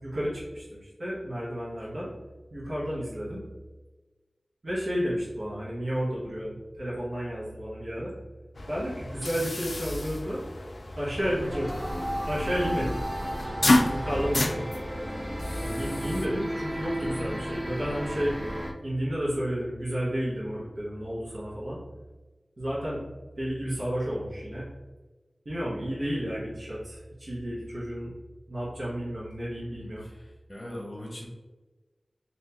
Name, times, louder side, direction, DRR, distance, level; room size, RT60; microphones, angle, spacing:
voice 1, 0.0-2.1 2.5-3.4 4.6-8.1 8.7-10.4 11.0-11.7 12.3-13.0 13.9-14.7 15.6-18.3 18.8-21.8 22.6-23.0 23.4-24.7 25.4-28.1 28.5-30.0, equal, 75° right, -9 dB, 1.1 m, -32 dB
sound 1, 8.5-16.3, left 2 dB, 65° left, 0.3 m, -30 dB
sound 2, 11.2-18.7, equal, 5° right, 0.8 m, -34 dB
voice 2, 29.8-31.3, left 1 dB, 30° left, -3 dB, 0.9 m, -41 dB
3.4 x 2.7 x 2.8 m, 1.2 s
wide cardioid pair, 45°, 0 cm